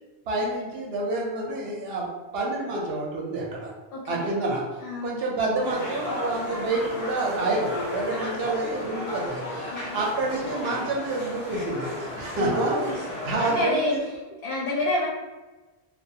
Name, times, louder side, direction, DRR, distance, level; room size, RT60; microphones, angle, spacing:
voice 1, 0.3-3.7 4.1-4.6 5.0-14.0, right 2 dB, 80° right, -3 dB, 0.8 m, -28 dB
voice 2, 3.9-4.3 4.8-5.2 8.1-8.2 9.7-10.0 12.4-12.9 13.4-14.1 14.4-15.1, left 2 dB, 70° left, -5 dB, 0.7 m, -28 dB
sound 1, 5.6-13.6, left 1 dB, 40° left, 0.9 m, -34 dB
2.3 x 2.1 x 2.7 m, 1.2 s
omnidirectional pair, 1.0 m